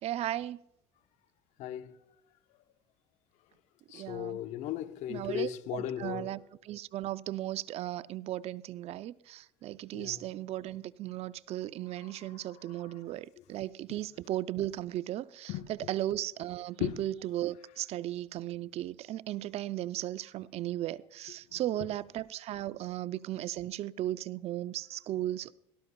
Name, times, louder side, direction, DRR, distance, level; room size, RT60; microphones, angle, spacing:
voice 1, 0.0-0.6 3.9-4.4 5.1-6.4 6.7-25.5, right 13 dB, 55° right, 0.5 m, -36 dB
voice 2, 1.6-2.0 3.9-6.4 9.9-10.2 12.0-13.0 13.4-13.5 15.5-15.9 16.8-17.0 21.5-21.6, left 11 dB, 65° left, 0.9 m, -37 dB
17.5 x 13.0 x 2.3 m
supercardioid pair, 75°, 13 cm